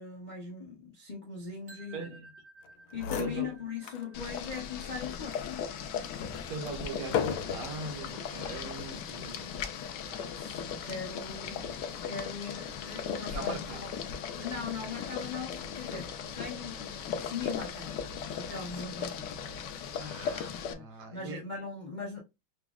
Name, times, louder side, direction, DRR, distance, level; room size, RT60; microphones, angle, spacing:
voice 1, 0.0-2.1 2.9-5.6 10.0-13.9 14.4-16.1 16.4-19.3 19.9-22.2, left 5 dB, 50° left, 0.5 m, -40 dB
sound 1, 1.7-7.6, right 2 dB, 45° right, 0.7 m, -57 dB
voice 2, 1.9-2.3 3.2-3.5 6.4-9.5 13.3-13.8 14.8-14.9 20.0-21.4, right 3 dB, 80° right, 2.0 m, -41 dB
sound 2, 2.6-2.7 2.9-4.1 4.5-4.6 5.3-7.9 8.7-9.0, left 7 dB, 85° left, 1.6 m, -36 dB
Boiling, 4.1-20.7, left 7 dB, 70° left, 1.0 m, -38 dB
5.8 x 2.0 x 3.5 m
omnidirectional pair, 2.4 m